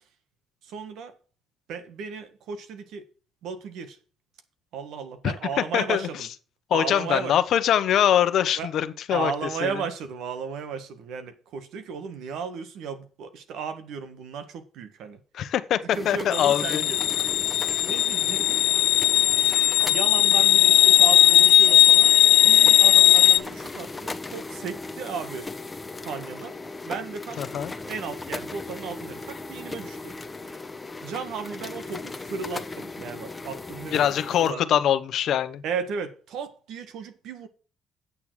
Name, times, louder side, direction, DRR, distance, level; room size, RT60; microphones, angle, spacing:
voice 1, 0.6-1.1 1.7-3.1 3.4-4.0 4.7-6.3 6.7-7.3 8.6-8.7 9.1-15.2 15.9-17.0 17.8-18.7 19.9-22.1 22.4-25.5 26.0-26.6 26.9-27.5 27.8-30.2 31.0-34.6 35.6-37.5, right 6 dB, 80° right, 1.6 m, -35 dB
voice 2, 5.7-6.1 6.7-9.3 9.6-9.7 15.3-16.8 17.7-17.8 27.4-27.7 33.9-35.6, left 10 dB, 70° left, 1.0 m, -23 dB
sound 1, 15.9-34.5, left 3 dB, 20° left, 1.0 m, -38 dB
sound 2, 16.3-23.4, left 12 dB, 85° left, 0.7 m, -18 dB
8.7 x 7.0 x 6.2 m
cardioid pair, 95°, 0 cm